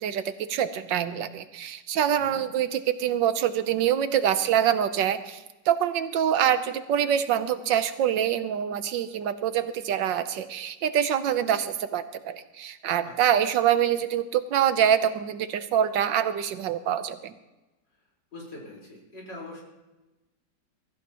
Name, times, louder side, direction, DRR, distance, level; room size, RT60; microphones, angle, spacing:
voice 1, 0.0-17.3, right 9 dB, 80° right, 11 dB, 1.5 m, -25 dB
voice 2, 18.3-19.6, left 2 dB, 75° left, -3 dB, 5.1 m, -42 dB
22.5 x 14.5 x 3.0 m, 1.1 s
omnidirectional pair, 2.0 m